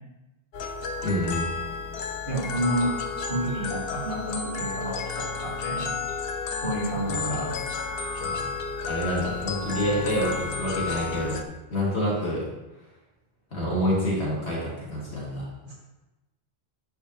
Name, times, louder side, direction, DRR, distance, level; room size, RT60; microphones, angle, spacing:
sound 1, 0.5-11.4, left 5 dB, 65° left, 0.8 m, -32 dB
voice 1, 1.0-1.5 7.1-7.4 8.2-8.4 8.8-11.4 11.7-12.4 13.5-15.5, equal, 90° left, -6 dB, 2.9 m, -27 dB
voice 2, 2.2-3.0 3.3-5.9 6.6-7.6 15.6-15.7, right 1 dB, 50° right, -6 dB, 2.6 m, -30 dB
10.5 x 5.2 x 3.1 m, 1.0 s
omnidirectional pair, 1.1 m